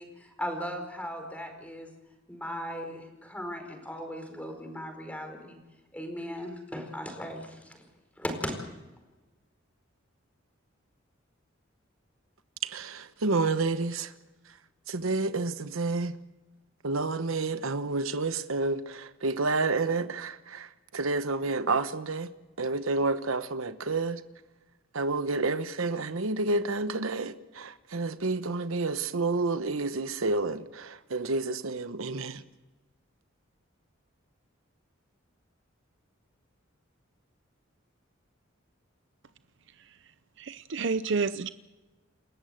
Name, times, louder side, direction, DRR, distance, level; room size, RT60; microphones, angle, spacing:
voice 1, 0.0-1.9 2.3-5.6 5.9-7.8 8.2-8.5, equal, 5° left, 4.7 m, -37 dB
voice 2, 12.6-14.1 14.9-16.1 16.8-20.7 20.9-22.3 22.6-24.2 24.9-32.4, right 3 dB, 90° right, 1.0 m, -29 dB
voice 3, 40.4-41.5, right 4 dB, 60° right, 0.7 m, -29 dB
29.0 x 14.5 x 7.9 m
head